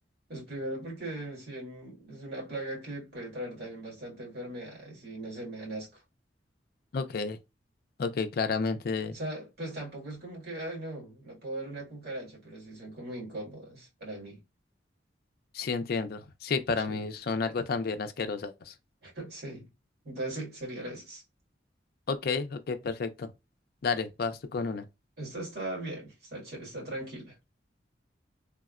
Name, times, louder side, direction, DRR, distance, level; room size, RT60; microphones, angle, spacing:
voice 1, 0.3-6.0 9.1-14.4 16.9-17.1 19.0-19.7 20.0-21.2 25.2-27.4, right 1 dB, 60° right, 1.7 m, -39 dB
voice 2, 6.9-7.4 8.0-9.2 15.5-18.7 22.1-23.3 23.8-24.9, left 4 dB, 55° left, 0.4 m, -31 dB
3.4 x 2.1 x 2.3 m
head